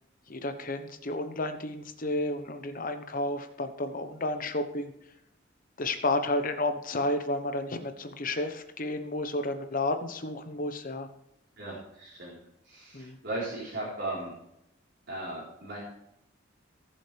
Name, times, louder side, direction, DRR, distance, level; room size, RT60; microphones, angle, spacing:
voice 1, 0.3-4.9 5.8-11.1 12.9-13.2, left 2 dB, 45° left, 7 dB, 1.1 m, -31 dB
voice 2, 11.6-12.4 12.6-14.3 15.1-15.8, right 2 dB, 60° right, -6 dB, 4.1 m, -37 dB
19.0 x 7.5 x 3.4 m, 0.80 s
head